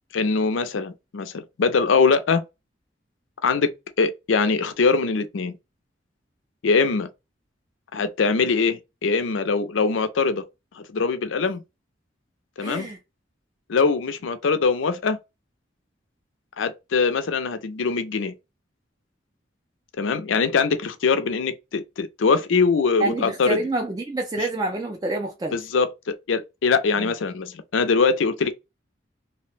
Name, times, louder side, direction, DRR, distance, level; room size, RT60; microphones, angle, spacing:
voice 1, 0.1-2.4 3.4-3.7 4.0-5.6 6.6-7.1 7.9-10.4 10.8-11.6 12.6-12.9 13.7-15.2 16.6-18.3 20.0-23.6 24.4-24.5 25.5-28.5, left 4 dB, 90° left, 0.5 m, -22 dB
voice 2, 12.6-13.0 23.0-25.6 27.0-27.1, right 2 dB, 20° right, 0.3 m, -27 dB
2.7 x 2.1 x 3.1 m
head